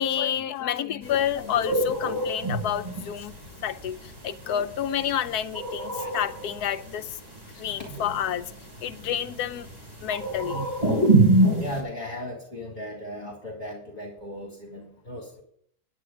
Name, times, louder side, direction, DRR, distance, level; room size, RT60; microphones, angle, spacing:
voice 1, 0.0-3.3 3.6-7.2 7.6-8.5 8.8-9.7 10.0-10.7, left 10 dB, 75° left, 1.2 m, -29 dB
sound 1, 1.0-11.8, right 2 dB, 25° right, 4.3 m, -26 dB
voice 2, 11.6-15.4, left 1 dB, 30° left, 2.2 m, -37 dB
10.0 x 10.0 x 5.0 m
omnidirectional pair, 1.7 m